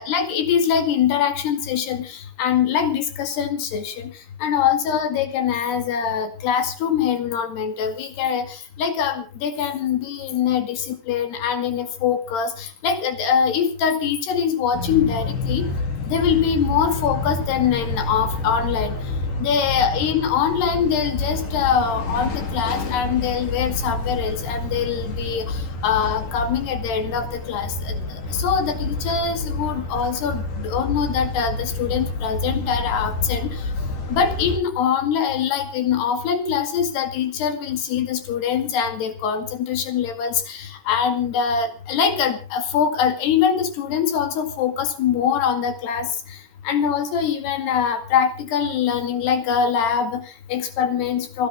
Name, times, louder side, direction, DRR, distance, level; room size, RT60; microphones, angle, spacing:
voice 1, 0.0-4.1 4.4-15.7 16.1-19.0 19.4-33.6 34.1-46.4 46.6-51.5, left 7 dB, 75° left, 8 dB, 4.1 m, -23 dB
sound 1, 14.7-34.6, left 2 dB, 50° left, 4.4 m, -28 dB
29.0 x 10.0 x 3.6 m, 0.36 s
omnidirectional pair, 4.8 m